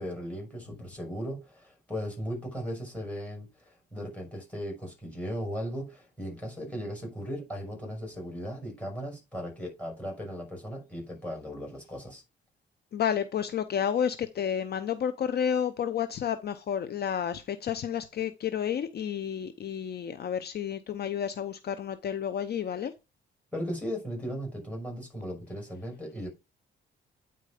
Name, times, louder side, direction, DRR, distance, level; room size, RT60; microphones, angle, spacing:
voice 1, 0.0-12.2 23.5-26.3, equal, 5° left, 5.7 m, -37 dB
voice 2, 12.9-22.9, left 8 dB, 55° left, 0.7 m, -31 dB
9.2 x 4.4 x 5.0 m
cardioid pair, 90°, 20 cm